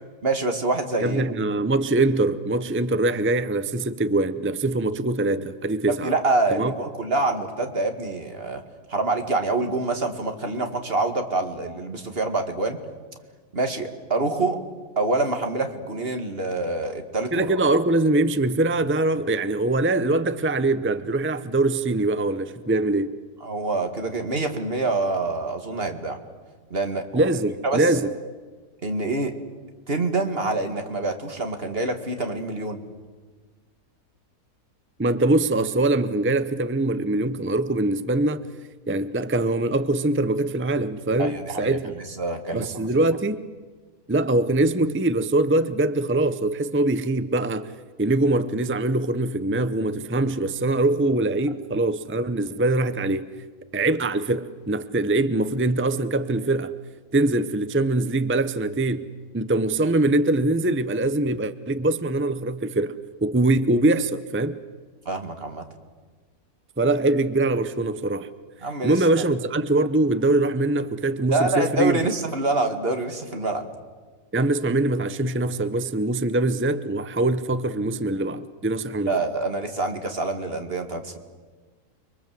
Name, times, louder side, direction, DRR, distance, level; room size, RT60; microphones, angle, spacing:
voice 1, 0.2-1.2 6.0-8.6 8.9-12.8 13.5-14.6 15.0-17.5 23.4-26.2 26.7-27.3 27.6-27.9 28.8-29.3 29.9-32.8 41.2-42.9 65.1-65.6 68.6-69.0 71.3-73.7 79.1-81.2, right 2 dB, 40° right, 2.4 m, -26 dB
voice 2, 1.0-6.1 6.5-6.7 17.3-23.2 27.1-28.1 35.0-38.5 38.9-41.9 42.5-43.4 44.1-47.7 48.0-53.3 53.7-56.7 57.1-59.1 59.3-62.9 63.2-64.6 66.8-68.3 68.8-72.1 74.3-79.1, right 2 dB, 20° right, 0.3 m, -23 dB
29.5 x 23.5 x 7.7 m
omnidirectional pair, 1.7 m